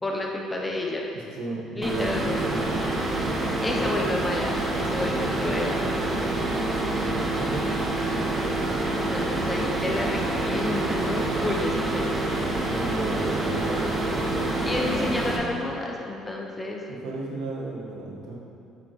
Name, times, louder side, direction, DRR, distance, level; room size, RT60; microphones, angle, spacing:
voice 1, 0.0-1.0 1.7-2.4 3.6-6.1 8.1-12.2 14.6-16.8, left 2 dB, 15° left, -1 dB, 0.8 m, -31 dB
voice 2, 1.1-2.9 4.9-5.6 6.9-7.7 12.6-14.5 16.9-18.4, right 2 dB, 85° right, -4 dB, 1.5 m, -34 dB
sound 1, 1.8-15.4, right 2 dB, 30° right, 1.1 m, -27 dB
8.9 x 6.7 x 3.2 m, 2.7 s
cardioid pair, 135°, 0 cm